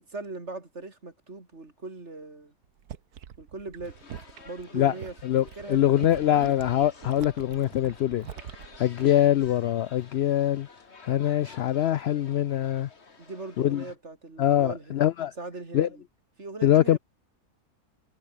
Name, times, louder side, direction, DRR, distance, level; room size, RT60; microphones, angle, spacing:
voice 1, 0.0-2.5 3.4-4.0 4.4-5.1 5.6-6.5 13.2-15.0 15.4-16.0 16.4-17.0, right 3 dB, 45° right, 3.7 m, -40 dB
sound 1, 2.6-9.8 10.1-10.5, right 9 dB, 90° right, 1.7 m, -44 dB
sound 2, 3.8-14.0, left 4 dB, 45° left, 2.2 m, -51 dB
voice 2, 5.2-8.3 8.8-10.7 11.0-12.9 13.6-13.8 14.4-15.3 15.7-15.9 16.6-17.0, left 12 dB, 75° left, 0.5 m, -23 dB
omnidirectional pair, 1.6 m